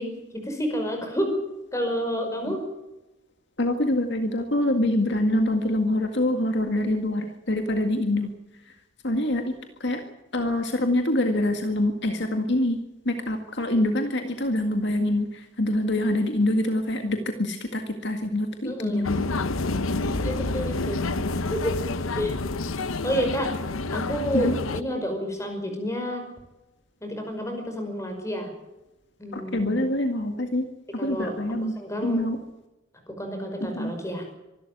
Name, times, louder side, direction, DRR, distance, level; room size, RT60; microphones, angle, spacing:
voice 1, 0.0-1.4 1.7-2.6 18.6-19.1 20.2-21.0 21.5-21.8 22.2-22.4 23.0-23.5 23.9-26.2 27.0-28.5 29.2-29.9 31.0-31.4 31.8-32.2 33.1-34.2, equal, 15° left, 4 dB, 5.5 m, -29 dB
voice 2, 3.6-8.3 8.7-8.8 9.0-10.0 10.3-12.8 13.1-19.2 24.3-24.6 29.3-30.6 30.9-31.7 32.0-32.4 33.6-33.9, left 1 dB, 55° left, 6 dB, 2.0 m, -25 dB
sound 1, 19.0-24.8, left 3 dB, 85° left, 1.0 m, -28 dB
25.0 x 12.5 x 9.4 m, 0.99 s
head